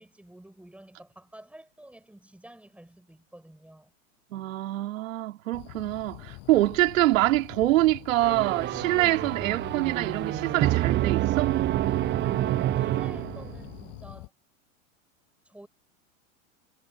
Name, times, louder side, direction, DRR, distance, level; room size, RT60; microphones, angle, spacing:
voice 1, 0.0-3.9 12.0-14.3 15.4-15.7, right 1 dB, 5° right, 8.0 m, -50 dB
voice 2, 4.3-11.6, right 16 dB, 75° right, 2.7 m, -25 dB
sound 1, 5.5-14.3, left 29 dB, 50° left, 6.9 m, -44 dB
sound 2, 8.2-13.8, right 15 dB, 25° right, 0.6 m, -27 dB
hypercardioid pair, 115°, 40 cm